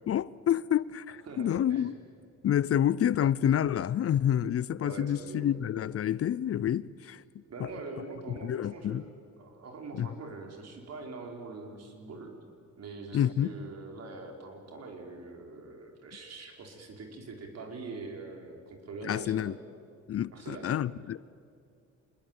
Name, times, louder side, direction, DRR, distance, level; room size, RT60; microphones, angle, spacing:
voice 1, 0.1-1.9 2.4-7.2 7.6-7.7 8.4-9.0 10.0-10.1 13.1-13.5 19.0-19.5 20.1-21.2, left 10 dB, 50° left, 0.6 m, -28 dB
voice 2, 1.2-1.9 4.8-5.5 7.5-9.1 9.4-12.3 12.8-19.5 20.3-20.7, right 3 dB, 55° right, 5.2 m, -43 dB
26.5 x 20.5 x 9.2 m
cardioid pair, 90°, 30 cm